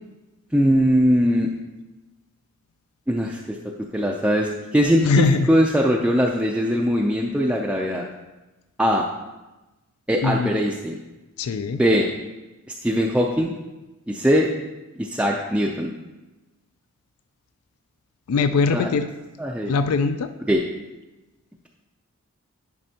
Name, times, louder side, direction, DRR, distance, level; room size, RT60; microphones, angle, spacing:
voice 1, 0.5-1.5 3.1-3.4 3.9-8.0 8.8-9.0 10.1-11.0 11.7-12.1 12.8-13.5 14.1-14.5 15.0-15.9 18.7-18.9 19.4-19.7 20.5-20.6, equal, 5° right, -1 dB, 0.4 m, -20 dB
voice 2, 5.0-5.5 10.2-10.5 11.4-11.8 18.3-19.1 19.7-20.3, left 4 dB, 75° left, 10 dB, 0.4 m, -21 dB
11.0 x 5.2 x 2.8 m, 1.1 s
head